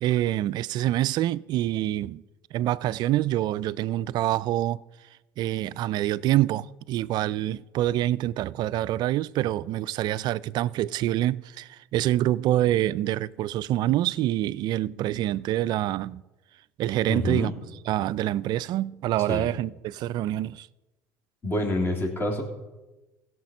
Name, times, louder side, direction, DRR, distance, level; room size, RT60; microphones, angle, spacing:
voice 1, 0.0-2.2 2.5-4.8 5.4-16.2 16.8-17.5 17.9-20.7, right 14 dB, 55° right, 0.4 m, -26 dB
voice 2, 17.1-17.5 19.2-19.5 21.4-22.4, left 1 dB, 25° left, 3.1 m, -27 dB
16.0 x 6.5 x 5.4 m
hypercardioid pair, 80°, 9 cm